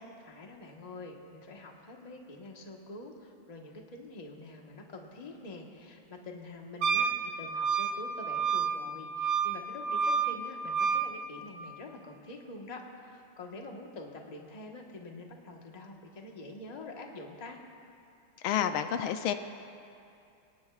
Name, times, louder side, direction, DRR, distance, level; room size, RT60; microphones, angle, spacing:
voice 1, 0.2-17.6, left 2 dB, 25° left, 0 dB, 1.1 m, -46 dB
Wind instrument woodwind instrument, 6.8-11.1, right 6 dB, 70° right, 1.4 m, -30 dB
voice 2, 18.4-19.4, left 9 dB, 80° left, 9 dB, 1.4 m, -29 dB
24.5 x 18.5 x 2.4 m, 2.5 s
omnidirectional pair, 2.3 m